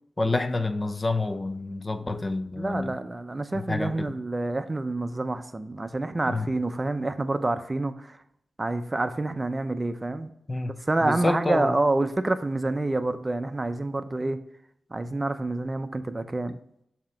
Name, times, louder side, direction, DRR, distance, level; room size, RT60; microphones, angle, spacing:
voice 1, 0.2-2.9 3.5-4.1 6.3-6.5 10.5-11.7, left 2 dB, 30° left, 9 dB, 0.6 m, -28 dB
voice 2, 2.6-8.2 8.6-10.3 10.9-14.4 14.9-16.6, right 2 dB, 25° right, 9 dB, 0.5 m, -28 dB
7.1 x 2.9 x 5.7 m, 0.73 s
cardioid pair, 65°, 0 cm